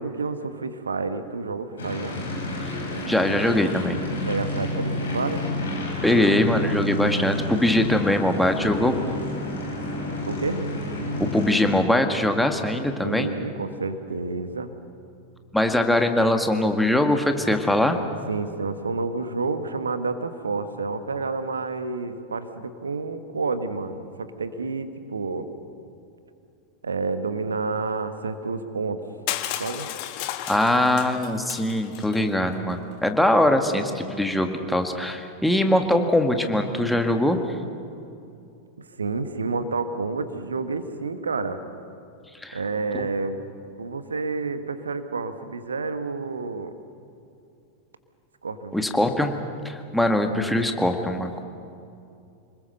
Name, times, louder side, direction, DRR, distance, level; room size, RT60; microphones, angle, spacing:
voice 1, 0.0-2.2 4.3-5.4 10.3-10.6 13.0-14.7 18.3-25.5 26.8-29.0 29.6-29.9 39.0-41.6 42.5-43.4 43.8-46.7 48.4-48.7, right 4 dB, 75° right, 10 dB, 1.4 m, -29 dB
sound 1, 1.8-11.8, left 1 dB, 65° left, 5.1 m, -30 dB
voice 2, 3.1-4.0 6.0-9.0 11.2-13.3 15.5-18.0 30.5-37.4 42.4-42.6 42.9-43.1 48.7-49.3 49.6-51.4, left 1 dB, 5° left, 5 dB, 1.8 m, -22 dB
Crushing, 29.3-32.2, left 12 dB, 45° left, 1.4 m, -33 dB
27.5 x 20.5 x 6.7 m, 2.6 s
figure-of-eight pair, 90°, 0 cm